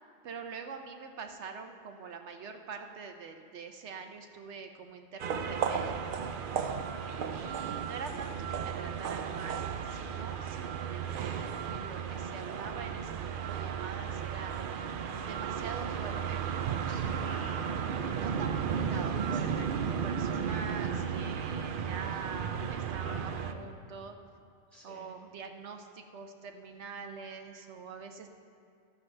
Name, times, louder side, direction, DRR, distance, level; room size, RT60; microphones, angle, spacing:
voice 1, 0.2-6.3 7.3-11.3 11.7-14.5 15.2-16.4 18.1-24.2 24.8-28.3, right 5 dB, 70° right, 5 dB, 1.0 m, -44 dB
sound 1, 5.2-23.5, right 7 dB, 55° right, 0.6 m, -34 dB
voice 2, 6.9-7.5 16.0-16.3 16.9-18.1 18.8-19.3 20.4-21.3 23.0-23.6 24.7-25.1, right 1 dB, 30° right, -3 dB, 1.4 m, -50 dB
13.5 x 11.5 x 3.3 m, 2.3 s
omnidirectional pair, 1.2 m